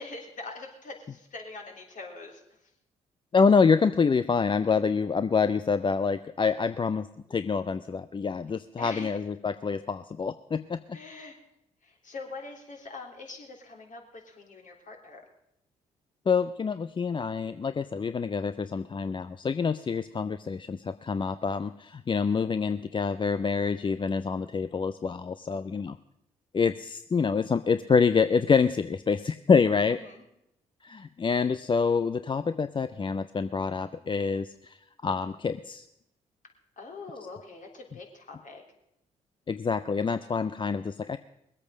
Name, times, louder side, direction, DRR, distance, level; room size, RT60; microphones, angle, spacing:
voice 1, 0.0-2.7 8.8-9.2 10.9-11.4 11.8-15.2 29.9-30.2 36.8-38.6, left 3 dB, 50° left, 1 dB, 3.3 m, -43 dB
voice 2, 3.3-11.0 16.3-26.0 26.5-30.0 30.8-34.8 35.0-35.8 39.5-41.2, left 5 dB, 30° left, 12 dB, 0.5 m, -26 dB
20.5 x 8.4 x 6.3 m, 0.80 s
hypercardioid pair, 45°, 17 cm